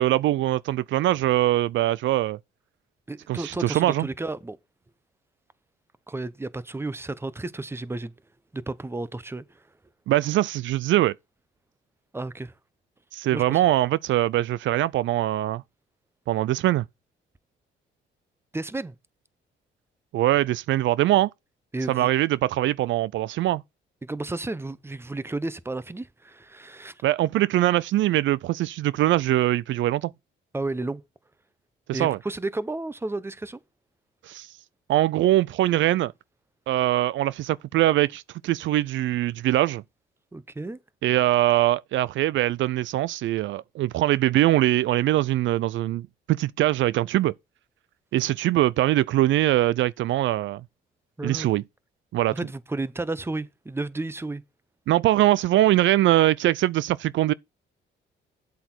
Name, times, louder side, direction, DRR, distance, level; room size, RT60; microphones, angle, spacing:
voice 1, 0.0-2.4 3.3-4.1 10.1-11.1 13.1-15.6 16.3-16.9 20.1-21.3 21.9-23.6 27.0-30.1 31.9-32.2 34.2-34.5 34.9-36.1 36.7-39.8 41.0-47.3 48.1-50.6 51.2-51.6 52.1-52.4 54.9-57.3, right 14 dB, 75° right, 0.4 m, -22 dB
voice 2, 3.1-4.6 6.1-8.1 8.5-9.6 12.1-12.5 13.3-13.6 18.5-18.9 21.7-22.1 24.0-27.0 30.5-31.0 31.9-33.6 40.3-40.8 51.2-51.5 52.3-54.4, right 2 dB, 10° right, 0.9 m, -32 dB
8.1 x 8.0 x 4.4 m
cardioid pair, 90°, 20 cm